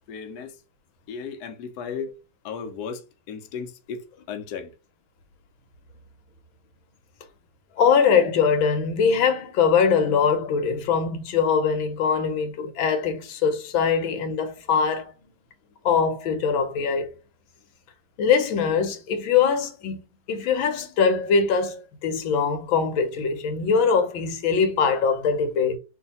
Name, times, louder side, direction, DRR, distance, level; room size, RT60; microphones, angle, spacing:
voice 1, 0.1-0.6 1.1-4.7 7.7-7.8, left 6 dB, 65° left, 1.0 m, -36 dB
voice 2, 7.8-15.1 15.8-17.1 18.2-20.0 20.3-25.8, left 6 dB, 85° left, 1.5 m, -22 dB
3.1 x 2.7 x 4.0 m
omnidirectional pair, 2.1 m